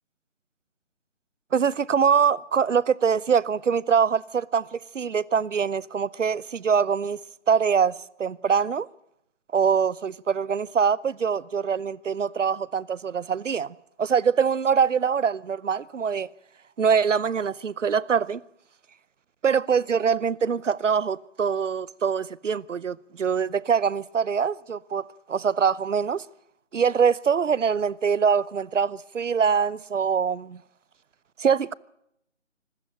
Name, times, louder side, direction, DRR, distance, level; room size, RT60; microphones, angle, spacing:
voice 1, 1.5-7.2 7.5-8.9 9.5-16.3 16.8-18.4 19.4-26.2 26.7-30.6 31.4-31.7, right 6 dB, 80° right, 0.8 m, -24 dB
25.5 x 14.0 x 9.0 m
figure-of-eight pair, 170°, 36 cm